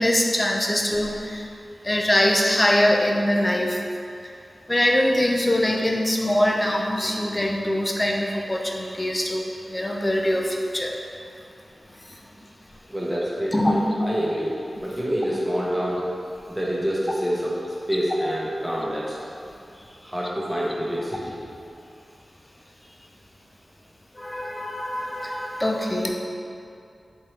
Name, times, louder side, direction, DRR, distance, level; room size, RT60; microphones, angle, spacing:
voice 1, 0.0-1.5 1.8-3.8 4.7-10.9 12.1-12.2 13.5-13.7 24.1-26.1, left 1 dB, 20° left, 1 dB, 0.4 m, -23 dB
voice 2, 12.9-14.5 14.8-16.1 16.5-17.6 17.9-19.2 20.0-21.3, equal, 10° right, -6 dB, 0.9 m, -27 dB
3.6 x 3.1 x 2.9 m, 2.5 s
cardioid pair, 50°, 0 cm